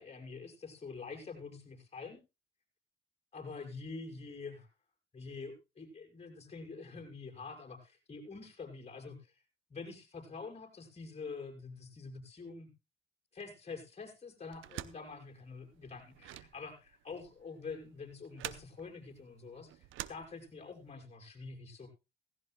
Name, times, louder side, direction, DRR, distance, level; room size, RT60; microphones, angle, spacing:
voice 1, 0.0-2.2 3.3-4.7 5.1-9.3 9.7-12.7 13.3-21.9, left 4 dB, 30° left, 3 dB, 5.7 m, -46 dB
sound 1, 14.5-20.9, right 13 dB, 85° right, 0.8 m, -48 dB
17.0 x 16.0 x 2.2 m, 0.27 s
cardioid pair, 90°, 20 cm